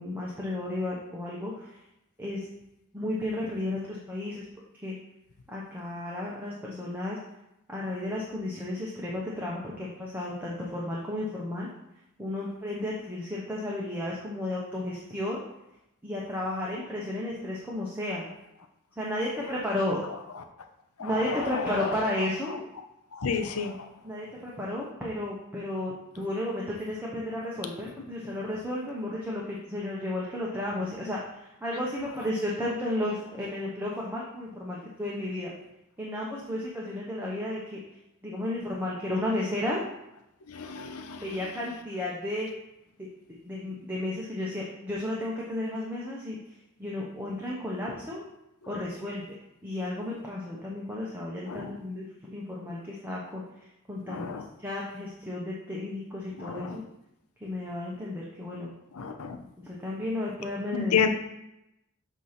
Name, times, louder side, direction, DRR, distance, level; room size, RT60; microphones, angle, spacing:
voice 1, 0.0-1.8 2.2-2.5 2.9-4.5 4.8-4.9 5.5-7.2 7.7-11.7 12.2-15.4 16.0-18.3 19.0-20.0 21.0-22.6 24.0-35.5 36.0-37.8 38.2-39.8 41.2-42.5 43.0-43.1 43.4-48.2 48.7-56.8 57.4-58.7 59.6-61.0, left 1 dB, 10° right, -5 dB, 0.9 m, -33 dB
voice 2, 21.0-22.0 23.1-23.9 40.5-41.4 51.5-51.7 54.1-54.5 56.4-56.8 58.9-59.4 60.7-61.1, left 6 dB, 85° left, 6 dB, 0.7 m, -31 dB
8.1 x 2.9 x 5.8 m, 0.87 s
head